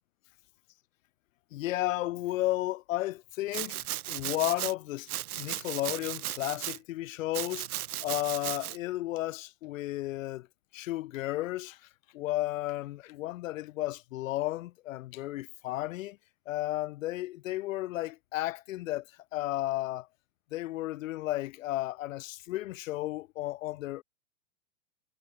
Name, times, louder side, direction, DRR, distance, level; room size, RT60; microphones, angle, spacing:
voice 1, 1.5-5.1 5.3-7.7 8.0-10.5 10.7-11.8 12.1-16.2 16.5-19.1 19.3-20.1 20.5-24.0, left 16 dB, 60° left, 1.3 m, -33 dB
Domestic sounds home sounds, 3.5-4.7 5.1-6.8 7.3-8.8, right 14 dB, 80° right, 0.7 m, -36 dB
hypercardioid pair, 120°, 44 cm